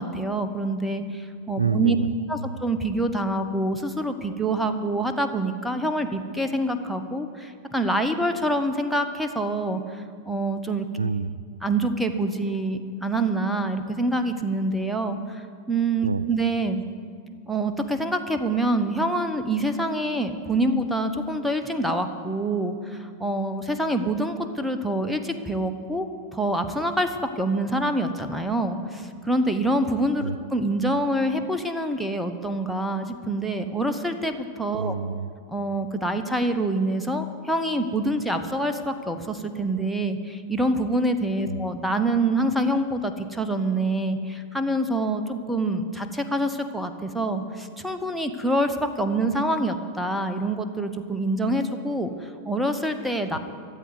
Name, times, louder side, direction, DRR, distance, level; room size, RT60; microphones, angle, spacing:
voice 1, 0.0-2.0 2.3-10.9 11.6-16.8 17.5-26.1 26.3-34.9 35.5-53.4, right 1 dB, ahead, 6 dB, 1.0 m, -26 dB
voice 2, 1.6-2.1 2.4-2.5 11.0-11.3 16.0-16.2 30.2-30.4 34.8-35.3 41.5-41.6, right 5 dB, 75° right, 19 dB, 0.3 m, -27 dB
14.0 x 7.9 x 9.5 m, 2.3 s
figure-of-eight pair, 90°, 0 cm